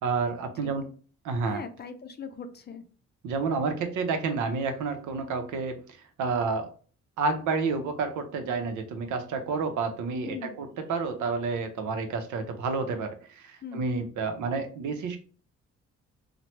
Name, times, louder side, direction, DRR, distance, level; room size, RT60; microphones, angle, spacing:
voice 1, 0.0-0.9 1.2-1.6 3.2-6.7 7.2-15.2, right 4 dB, 75° right, 7 dB, 0.7 m, -30 dB
voice 2, 1.5-2.8 10.2-10.7 13.6-13.9, left 5 dB, 35° left, 7 dB, 0.5 m, -40 dB
3.0 x 2.1 x 2.8 m, 0.40 s
cardioid pair, 90°, 30 cm